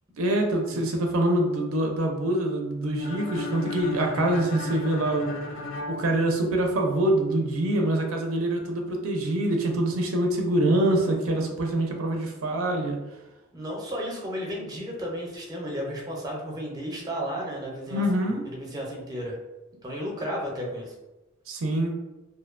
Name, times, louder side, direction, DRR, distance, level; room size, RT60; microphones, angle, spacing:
voice 1, 0.2-5.3 5.9-13.0 17.9-18.4 21.5-21.9, right 1 dB, 85° right, 2 dB, 0.4 m, -25 dB
sound 1, 3.0-6.9, left 3 dB, 65° left, 0.4 m, -35 dB
voice 2, 13.5-19.4 19.8-20.9, equal, 20° right, -2 dB, 0.5 m, -33 dB
2.6 x 2.1 x 2.4 m, 1.0 s
head